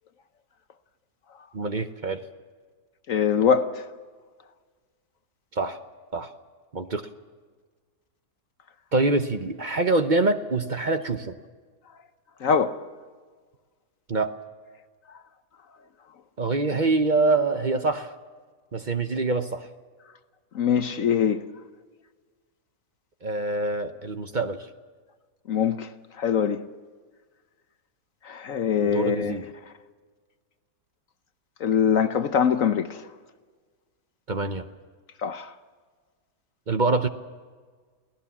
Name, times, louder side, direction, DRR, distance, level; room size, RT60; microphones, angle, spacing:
voice 1, 1.5-2.2 5.5-5.8 6.1-6.3 6.7-7.1 8.9-11.3 14.1-14.3 16.4-18.1 18.7-19.7 23.2-24.7 28.8-29.5 34.3-34.7 36.7-37.1, right 3 dB, 35° right, 0.8 m, -25 dB
voice 2, 3.1-3.8 12.4-12.8 20.5-21.4 25.5-25.9 26.2-26.6 28.2-29.4 31.6-33.0 35.2-35.5, left 7 dB, 60° left, 1.1 m, -23 dB
23.5 x 17.0 x 7.2 m
omnidirectional pair, 1.7 m